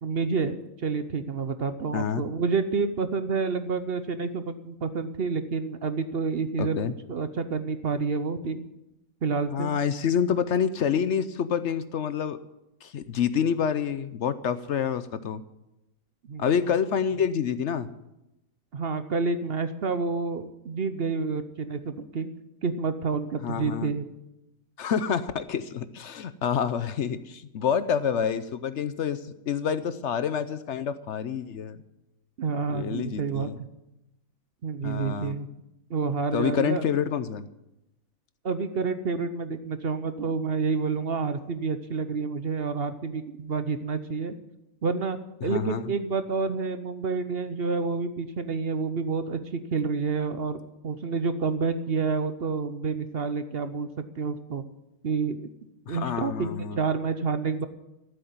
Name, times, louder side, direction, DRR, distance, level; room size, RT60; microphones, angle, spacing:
voice 1, 0.0-6.8 7.1-8.6 9.2-9.7 16.2-16.5 18.7-22.3 22.6-24.1 32.4-33.7 34.6-35.5 35.9-36.8 38.4-44.4 44.8-53.9 54.2-54.6 55.0-55.4 55.9-57.7, right 4 dB, 50° right, 11 dB, 0.9 m, -29 dB
voice 2, 1.9-2.2 6.6-6.9 9.5-12.4 12.8-15.4 16.4-17.9 23.4-23.9 24.8-31.8 32.7-33.6 34.8-35.3 36.3-37.4 45.4-45.8 55.9-56.8, left 7 dB, 60° left, 13 dB, 0.9 m, -27 dB
14.5 x 7.9 x 9.4 m, 0.91 s
omnidirectional pair, 1.5 m